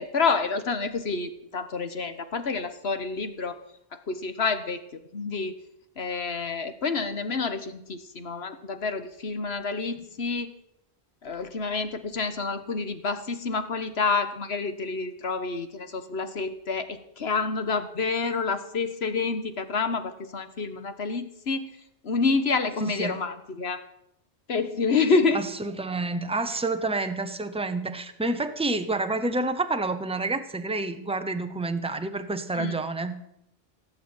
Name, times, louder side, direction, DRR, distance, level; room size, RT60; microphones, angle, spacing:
voice 1, 0.0-3.6 4.1-5.5 6.0-10.5 11.2-21.7 22.0-23.8 24.5-25.4 32.6-32.7, left 4 dB, 75° left, 10 dB, 1.6 m, -28 dB
voice 2, 22.8-23.2 25.3-33.2, right 2 dB, 5° right, 8 dB, 1.0 m, -29 dB
17.5 x 8.2 x 8.8 m, 0.77 s
omnidirectional pair, 1.1 m